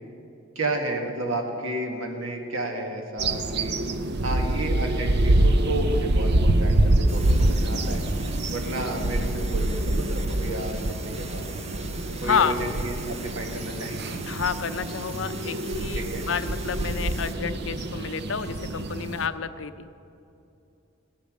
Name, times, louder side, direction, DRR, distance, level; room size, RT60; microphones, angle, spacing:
voice 1, 0.6-3.8 4.2-8.0 8.5-11.5 12.2-14.2 16.0-16.3, right 1 dB, 85° right, 3 dB, 1.7 m, -32 dB
sound 1, 3.2-19.3, right 1 dB, 55° right, 0.6 m, -25 dB
sound 2, 7.1-17.3, right 4 dB, 30° right, 0.9 m, -42 dB
voice 2, 12.2-12.6 14.3-19.9, left 6 dB, 70° left, 11 dB, 0.5 m, -29 dB
16.5 x 8.6 x 6.4 m, 2.7 s
head